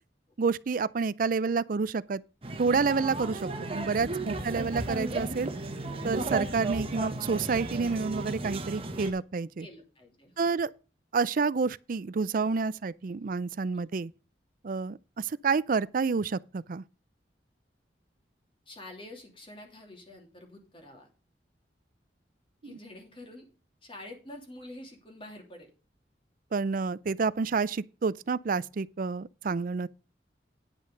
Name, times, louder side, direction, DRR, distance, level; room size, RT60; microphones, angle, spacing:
voice 1, 0.4-2.2 2.6-5.5 6.0-9.7 10.4-10.7 11.1-14.1 14.6-16.8 22.6-22.7 26.5-29.9, right 4 dB, 50° right, 0.4 m, -29 dB
sound 1, 2.4-9.1, right 2 dB, 35° right, 1.4 m, -34 dB
voice 2, 9.6-10.6 13.7-13.8 18.7-21.1 22.6-23.4 23.8-25.7, left 1 dB, 30° left, 3.0 m, -47 dB
10.0 x 6.4 x 5.4 m
head